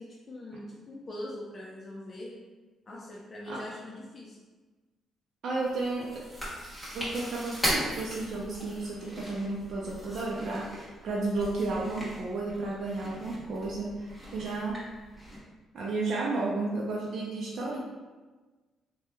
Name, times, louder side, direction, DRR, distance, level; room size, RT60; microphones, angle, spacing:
voice 1, 0.0-2.4 2.9-4.4, left 1 dB, 30° left, -5 dB, 0.5 m, -42 dB
voice 2, 5.4-6.1 6.9-13.9 14.3-14.8 15.7-17.8, right 3 dB, 65° right, -5 dB, 0.5 m, -32 dB
Chewing mastication, 5.6-15.4, equal, 5° left, 1.2 m, -38 dB
2.9 x 2.2 x 3.3 m, 1.3 s
cardioid pair, 90°, 0 cm